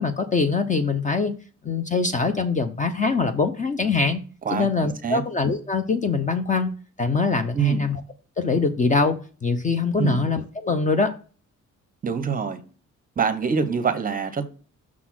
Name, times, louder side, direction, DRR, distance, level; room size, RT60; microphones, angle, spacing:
voice 1, 0.0-1.3 1.6-4.2 4.5-6.7 7.0-8.0 8.4-11.1, left 4 dB, 25° left, 0.5 m, -23 dB
voice 2, 4.4-5.2 7.5-7.9 10.0-10.2 12.0-12.6 13.2-14.5, right 6 dB, 30° right, 0.7 m, -25 dB
6.0 x 4.0 x 5.9 m
wide cardioid pair, 180°, 29 cm